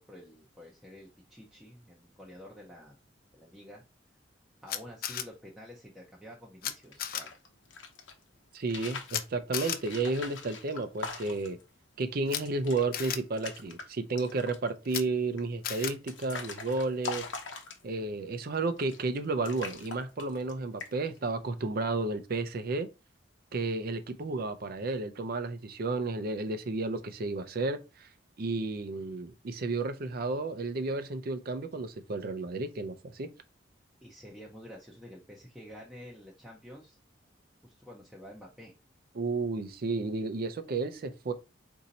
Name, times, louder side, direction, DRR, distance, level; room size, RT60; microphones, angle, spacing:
voice 1, 0.0-3.0 3.3-3.8 4.6-7.3 34.0-37.0 37.6-38.8, equal, 5° right, 0.6 m, -49 dB
Camera, 4.7-5.2 6.6-6.7 7.0-7.2 9.1-9.2 9.5-9.8 12.3-12.4 12.9-13.2 14.9-15.0 15.6-15.9, left 10 dB, 50° left, 0.5 m, -33 dB
sound 1, 6.8-8.1 8.6-9.2 9.8-11.6 12.0-12.1 12.3-12.9 13.2-13.9 14.2-14.7 15.4-18.1 18.8-19.2 19.4-20.5 20.8-21.2, left 4 dB, 80° left, 0.9 m, -42 dB
voice 2, 8.5-11.6 12.0-17.3 17.8-22.9 23.5-28.1 28.4-33.3 39.1-41.3, right 3 dB, 55° right, 0.5 m, -32 dB
4.2 x 2.7 x 4.0 m
head